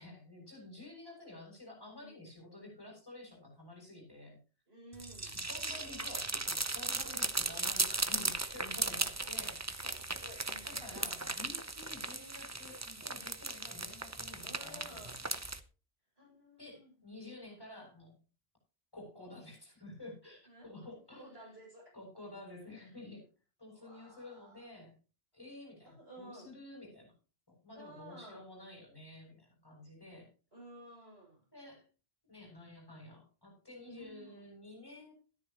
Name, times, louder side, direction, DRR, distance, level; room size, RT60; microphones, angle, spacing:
voice 1, 0.0-4.4 5.2-9.8 10.6-15.1 16.6-18.2 18.9-21.5 21.9-23.2 23.6-25.0 25.3-27.1 27.5-30.3 31.5-31.8 32.2-35.1, left 2 dB, 20° left, -1 dB, 7.2 m, -51 dB
voice 2, 4.7-5.4 9.2-9.3 9.8-11.2 14.2-15.2 16.2-16.9 19.1-19.3 20.5-20.7 21.1-22.0 22.8-22.9 23.7-24.7 25.8-26.6 27.7-28.5 30.5-31.4 33.8-34.4, equal, 70° right, -2 dB, 7.2 m, -54 dB
sound 1, 4.9-15.6, right 2 dB, 15° right, 0.7 m, -37 dB
14.0 x 13.0 x 3.0 m, 0.34 s
omnidirectional pair, 1.1 m